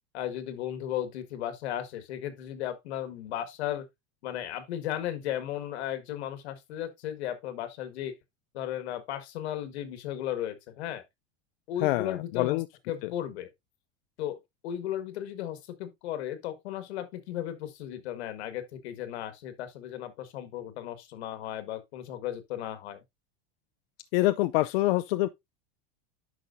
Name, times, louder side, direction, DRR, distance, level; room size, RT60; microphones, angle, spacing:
voice 1, 0.1-3.9 4.2-8.2 8.5-11.0 11.7-13.5 14.2-23.0, left 11 dB, 90° left, 1.7 m, -35 dB
voice 2, 11.8-12.6 24.1-25.3, left 18 dB, 60° left, 0.5 m, -25 dB
9.9 x 6.0 x 2.6 m
supercardioid pair, 170°, 32 cm